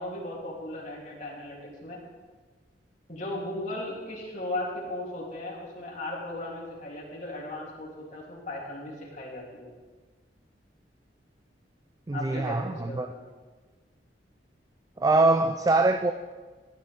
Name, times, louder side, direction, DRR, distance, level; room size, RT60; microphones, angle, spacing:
voice 1, 0.0-2.0 3.1-9.7 12.1-13.2, left 1 dB, 45° left, -5 dB, 3.3 m, -37 dB
voice 2, 12.1-13.1 15.0-16.1, right 2 dB, 20° right, 8 dB, 0.4 m, -23 dB
15.0 x 10.5 x 3.6 m, 1.4 s
head